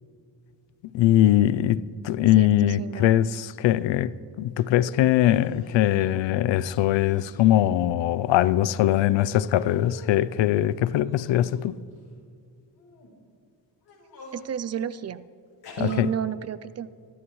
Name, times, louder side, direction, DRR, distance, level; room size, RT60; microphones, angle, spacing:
voice 1, 0.9-4.1 4.4-11.7 15.8-16.1, left 12 dB, 85° left, 0.6 m, -21 dB
voice 2, 2.2-3.1 14.3-15.2 15.8-16.9, right 9 dB, 40° right, 0.4 m, -32 dB
sound 1, 5.2-5.9 6.9-7.6 8.0-9.1 9.5-10.2 10.9-12.0 12.8-13.1 13.8-14.5 15.6-16.0, left 2 dB, 55° left, 4.1 m, -47 dB
25.0 x 12.5 x 3.1 m
cardioid pair, 115°, 43 cm